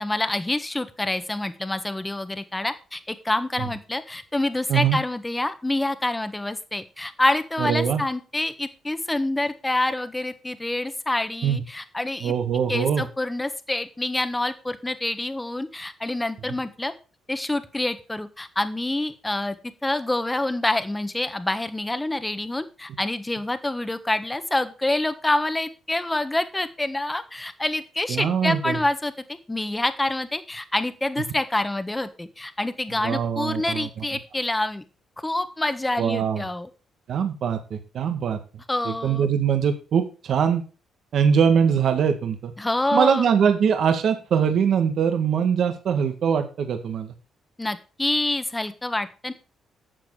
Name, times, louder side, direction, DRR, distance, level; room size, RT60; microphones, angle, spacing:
voice 1, 0.0-12.3 12.7-16.9 17.3-19.5 19.8-34.8 35.2-36.7 38.7-39.3 42.6-43.3 47.6-49.3, left 2 dB, 15° left, 11 dB, 1.4 m, -27 dB
voice 2, 7.6-8.0 11.4-11.6 12.2-13.0 28.1-28.8 33.0-34.1 36.0-36.4 37.1-38.4 38.8-40.6 41.1-42.5 42.9-47.1, right 7 dB, 65° right, 7 dB, 1.9 m, -22 dB
12.0 x 7.7 x 4.9 m, 0.35 s
cardioid pair, 90°, 0 cm